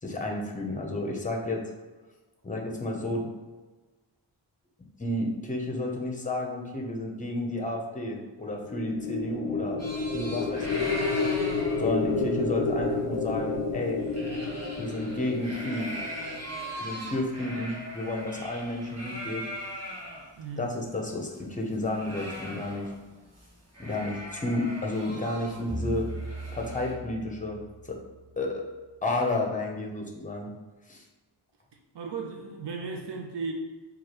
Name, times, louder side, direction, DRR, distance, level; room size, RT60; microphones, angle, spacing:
voice 1, 0.0-1.6 2.4-3.2 5.0-9.8 10.1-10.9 11.8-14.0 14.8-15.9 16.8-19.4 20.6-22.9 23.8-26.1 26.5-28.0 28.4-28.6 29.0-30.5 30.9-31.0, left 2 dB, 20° left, 0 dB, 0.7 m, -31 dB
sound 1, 8.5-16.9, left 3 dB, 65° left, 0.5 m, -30 dB
sound 2, 9.8-20.2 20.6-20.7 20.9-23.1 23.3-23.5 23.7-26.9, equal, 35° right, 1.1 m, -40 dB
voice 2, 20.4-20.7 31.9-33.5, right 4 dB, 70° right, 2 dB, 0.6 m, -35 dB
sound 3, 25.7-28.4, right 2 dB, 15° right, 1.1 m, -38 dB
4.6 x 2.4 x 3.0 m, 1.2 s
wide cardioid pair, 75°, 42 cm